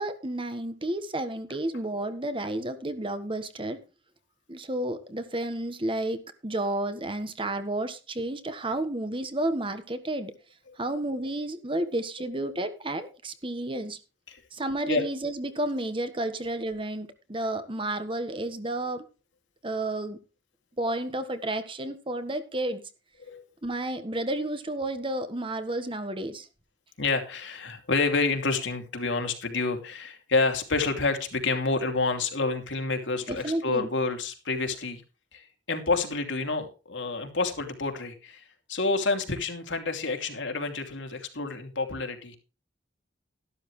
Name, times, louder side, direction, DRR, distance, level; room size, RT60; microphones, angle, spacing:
voice 1, 0.0-3.8 4.5-10.3 10.8-14.0 14.5-19.0 19.6-20.2 20.8-22.8 23.6-26.4 33.3-33.9, right 1 dB, 25° right, 10 dB, 1.4 m, -31 dB
voice 2, 27.0-35.0 35.3-42.4, left 3 dB, 80° left, 5 dB, 2.9 m, -28 dB
12.5 x 12.5 x 3.2 m, 0.32 s
head